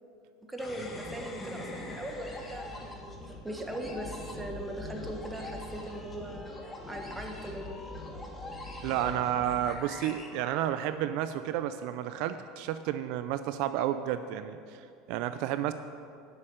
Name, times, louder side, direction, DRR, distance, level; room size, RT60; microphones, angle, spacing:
voice 1, 0.4-7.8, right 1 dB, 10° right, 2 dB, 1.4 m, -40 dB
sound 1, 0.6-11.2, left 2 dB, 20° left, 1.6 m, -43 dB
voice 2, 8.8-15.7, right 11 dB, 65° right, 11 dB, 0.4 m, -31 dB
11.0 x 6.7 x 6.5 m, 2.4 s
supercardioid pair, 110°, 0 cm